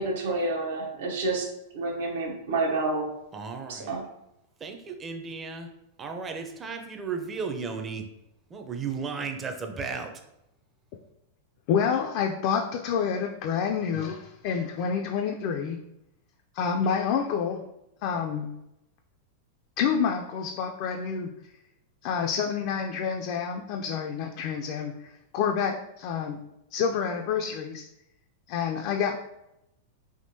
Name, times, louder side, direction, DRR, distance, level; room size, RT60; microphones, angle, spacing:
voice 1, 0.0-1.5 1.7-3.1 3.7-4.0, right 2 dB, 70° right, 1 dB, 0.8 m, -29 dB
voice 2, 3.3-3.9 4.6-5.7 6.0-8.0 8.5-10.1, right 5 dB, 25° right, 5 dB, 0.5 m, -34 dB
voice 3, 11.7-15.8 16.5-17.6 18.0-18.5 19.8-21.3 22.0-26.4 26.7-27.8 28.5-29.2, left 7 dB, 55° left, 3 dB, 0.3 m, -28 dB
3.5 x 2.6 x 2.7 m, 0.84 s
hypercardioid pair, 105°, 0 cm